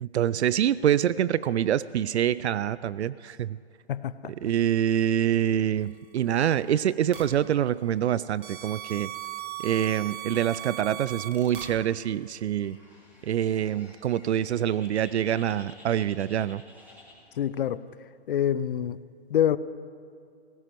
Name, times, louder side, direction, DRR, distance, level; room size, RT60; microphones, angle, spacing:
voice 1, 0.0-3.6 4.4-9.1 9.6-12.8 13.2-16.6, right 10 dB, 75° right, 18 dB, 0.5 m, -25 dB
voice 2, 3.9-4.3 17.4-17.8 18.3-19.0 19.3-19.6, left 10 dB, 55° left, 16 dB, 0.6 m, -26 dB
sound 1, 7.1-7.2 8.4-11.7, right 12 dB, 50° right, 1.9 m, -37 dB
Bird, 12.6-17.7, left 1 dB, 5° right, 2.8 m, -53 dB
20.5 x 17.0 x 3.1 m, 2.3 s
hypercardioid pair, 140°, 33 cm